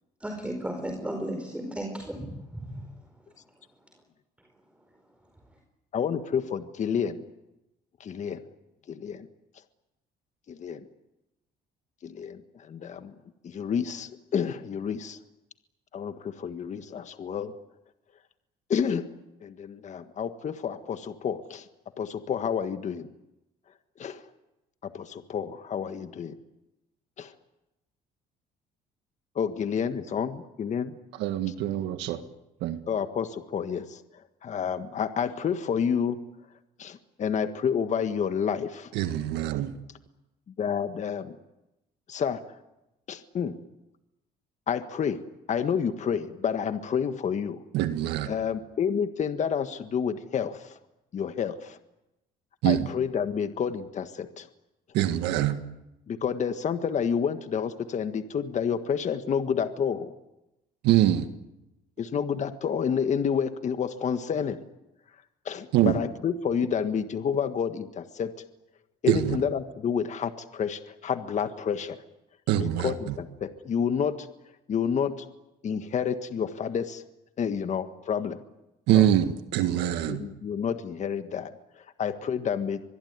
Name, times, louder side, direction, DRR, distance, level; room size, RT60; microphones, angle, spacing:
voice 1, 0.2-2.9, right 1 dB, 5° right, 4 dB, 4.8 m, -34 dB
voice 2, 5.9-7.2 8.0-8.4 8.9-9.3 10.5-10.8 12.0-13.1 13.4-15.2 15.9-17.5 18.7-19.1 19.4-21.7 22.0-23.1 24.0-24.2 24.8-26.4 29.3-31.0 32.9-34.0 34.4-36.2 36.8-38.9 40.6-41.3 42.1-42.4 43.1-43.6 44.7-45.2 45.5-47.6 48.3-50.8 51.1-51.8 52.6-54.5 56.1-60.1 62.0-64.6 65.4-68.4 69.0-72.0 72.6-74.3 74.7-75.2 75.6-77.0 77.4-78.4 78.9-79.0 80.1-82.9, left 7 dB, 45° left, 9 dB, 1.6 m, -29 dB
voice 3, 31.2-32.2 32.6-32.8 38.9-39.8 47.7-48.3 52.6-52.9 54.9-55.6 60.8-61.3 65.7-66.0 69.1-69.4 72.5-73.1 78.9-80.2, right 12 dB, 90° right, 8 dB, 1.7 m, -24 dB
25.0 x 21.5 x 9.6 m, 0.95 s
cardioid pair, 110°, 17 cm